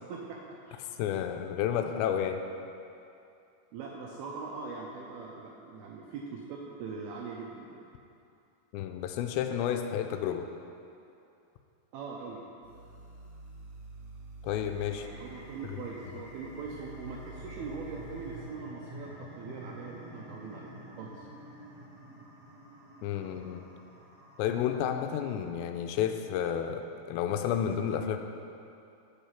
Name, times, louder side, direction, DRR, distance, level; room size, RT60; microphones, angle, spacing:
voice 1, 1.0-2.4 8.7-10.5 14.4-15.1 15.6-15.8 23.0-23.6 24.4-28.2, left 9 dB, 85° left, 6 dB, 2.7 m, -31 dB
voice 2, 3.7-7.8 11.9-12.4 14.9-21.3, right 4 dB, 90° right, -1 dB, 2.3 m, -42 dB
sound 1, 12.6-18.4, right 3 dB, 40° right, 1.3 m, -49 dB
sound 2, 14.5-25.7, equal, 55° right, 1.5 m, -49 dB
8.2 x 7.1 x 5.7 m, 2.7 s
omnidirectional pair, 5.1 m